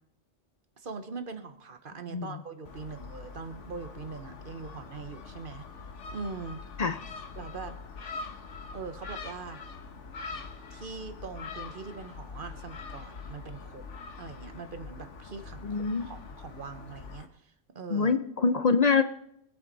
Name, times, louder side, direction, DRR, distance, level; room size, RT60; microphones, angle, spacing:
voice 1, 0.8-5.7 6.1-6.7 7.3-7.8 8.7-9.6 10.7-13.8 14.2-18.2, right 4 dB, 50° right, 9 dB, 1.2 m, -42 dB
Gull seagull, 2.6-17.2, left 4 dB, 85° left, 1.4 m, -43 dB
voice 2, 15.6-16.1 17.9-19.0, left 5 dB, 45° left, 11 dB, 0.6 m, -25 dB
24.5 x 9.0 x 4.0 m, 0.74 s
omnidirectional pair, 1.2 m